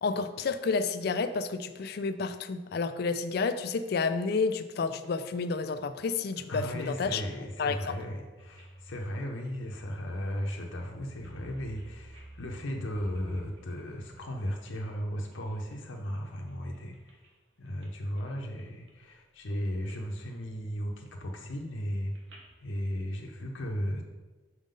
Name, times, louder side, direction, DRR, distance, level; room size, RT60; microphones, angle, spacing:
voice 1, 0.0-7.2 7.6-8.0, left 4 dB, 55° left, 10 dB, 0.3 m, -30 dB
voice 2, 6.5-17.2 17.6-22.2 22.6-24.0, equal, 80° left, 1 dB, 0.7 m, -36 dB
sound 1, 8.4-15.8 16.2-17.3 17.7-17.9 18.2-19.1 19.4-19.9 20.3-22.7, right 1 dB, 70° right, 1.2 m, -53 dB
6.1 x 3.7 x 5.2 m, 1.3 s
head